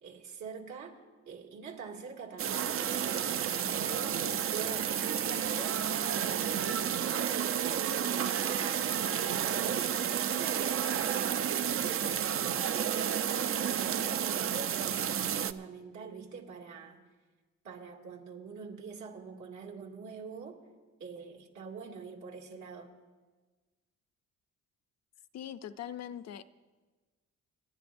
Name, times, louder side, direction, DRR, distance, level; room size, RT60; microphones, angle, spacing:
voice 1, 0.0-1.0 1.3-5.8 6.1-9.0 9.3-13.1 13.3-17.0 17.6-20.6 21.0-22.9, right 5 dB, 70° right, -1 dB, 2.4 m, -44 dB
sound 1, 2.4-15.5, right 9 dB, 45° right, 0.5 m, -31 dB
voice 2, 25.3-26.4, left 10 dB, 60° left, 13 dB, 0.6 m, -41 dB
29.0 x 11.0 x 2.6 m, 1.3 s
cardioid pair, 90°, 30 cm